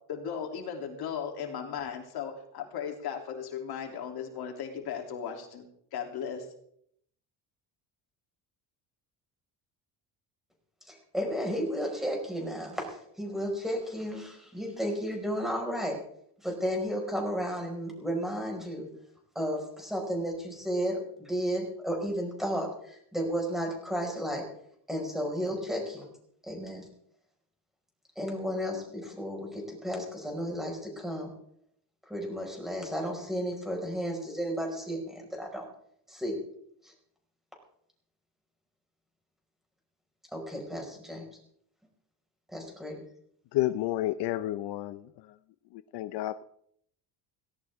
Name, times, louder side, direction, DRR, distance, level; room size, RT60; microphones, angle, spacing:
voice 1, 0.1-5.6 5.9-6.5, left 7 dB, 65° left, 3 dB, 3.2 m, -36 dB
voice 2, 10.9-16.0 16.4-18.9 19.4-24.4 24.9-26.1 26.5-26.9 28.2-31.3 32.1-35.6 36.1-36.4 36.8-36.9 40.3-41.3 42.5-43.0, equal, ahead, 1 dB, 5.4 m, -33 dB
voice 3, 43.5-45.4 45.7-46.4, left 15 dB, 80° left, 13 dB, 0.8 m, -31 dB
17.5 x 17.5 x 3.6 m, 0.67 s
cardioid pair, 140°, 40 cm